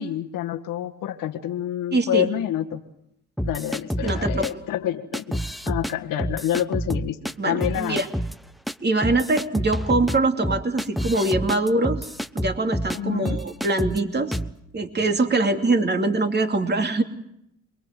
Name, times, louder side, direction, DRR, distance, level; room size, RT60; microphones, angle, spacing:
voice 1, 0.0-2.8 3.4-7.2 7.5-8.0 12.9-13.4, left 11 dB, 85° left, 4 dB, 1.7 m, -28 dB
voice 2, 1.9-2.3 4.0-4.4 7.4-8.1 8.8-12.1 12.3-14.4 14.7-17.0, right 2 dB, 30° right, 5 dB, 2.8 m, -23 dB
sound 1, 3.4-4.5 5.1-5.9 6.2-7.3 7.6-8.4 8.7-8.8 9.0-13.0 13.3-14.0 14.3-14.5, equal, ahead, 0.9 m, -28 dB
28.0 x 22.0 x 7.6 m, 0.75 s
supercardioid pair, 70°, 32 cm